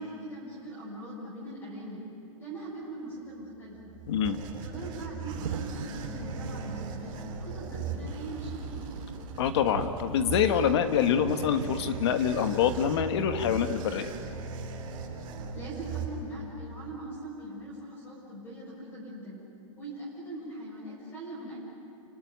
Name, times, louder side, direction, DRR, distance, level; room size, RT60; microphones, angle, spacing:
voice 1, 0.0-2.0 2.4-3.9 4.5-9.0 15.3-19.4 19.8-21.6, right 1 dB, 15° left, -6 dB, 6.4 m, -41 dB
sound 1, 3.6-16.6, right 4 dB, 30° right, 3.6 m, -39 dB
voice 2, 4.1-4.4 9.4-14.1, left 8 dB, 50° left, 8 dB, 1.4 m, -26 dB
sound 2, 5.2-15.6, right 7 dB, 85° right, 2.1 m, -43 dB
29.5 x 18.5 x 9.4 m, 2.7 s
supercardioid pair, 170°, 18 cm